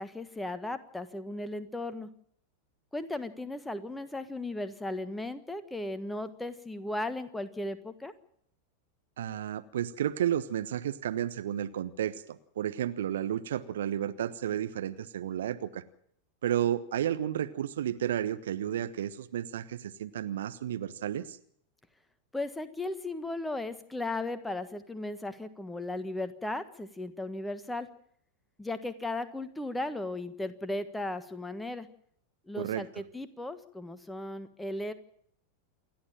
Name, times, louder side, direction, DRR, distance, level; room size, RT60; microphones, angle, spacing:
voice 1, 0.0-2.1 2.9-8.1 22.3-27.9 28.6-31.9 32.5-34.9, left 2 dB, 5° left, 11 dB, 1.5 m, -36 dB
voice 2, 9.2-15.8 16.4-21.4 32.6-32.8, right 10 dB, 60° right, 11 dB, 1.1 m, -32 dB
28.0 x 11.5 x 9.0 m, 0.66 s
figure-of-eight pair, 90°, 0 cm